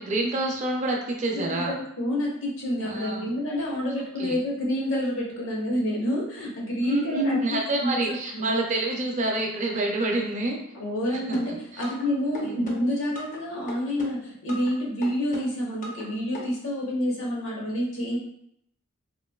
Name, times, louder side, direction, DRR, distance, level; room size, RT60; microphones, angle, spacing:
voice 1, 0.0-1.8 2.8-3.3 4.2-4.4 6.8-10.6 11.1-11.4 11.7-11.8 12.4-12.7, right 2 dB, 35° right, 0 dB, 0.5 m, -27 dB
voice 2, 1.3-7.4 7.8-8.0 8.3-8.6 10.7-18.2, equal, 65° left, -4 dB, 0.9 m, -28 dB
sound 1, 11.3-12.1 12.3-13.4 13.7-14.7 15.0-16.1 16.3-16.4, equal, 40° left, 0.5 m, -38 dB
3.1 x 2.5 x 2.2 m, 0.72 s
head